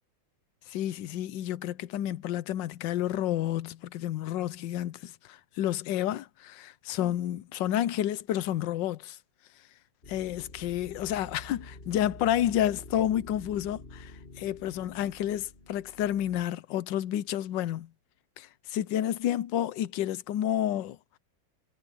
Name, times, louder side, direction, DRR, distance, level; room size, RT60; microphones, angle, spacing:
voice 1, 0.7-9.2 10.1-14.1 14.4-17.9 18.4-21.0, left 11 dB, 70° left, 1.3 m, -30 dB
sound 1, 10.0-16.5, left 2 dB, 30° left, 2.1 m, -48 dB
omnidirectional pair, 2.2 m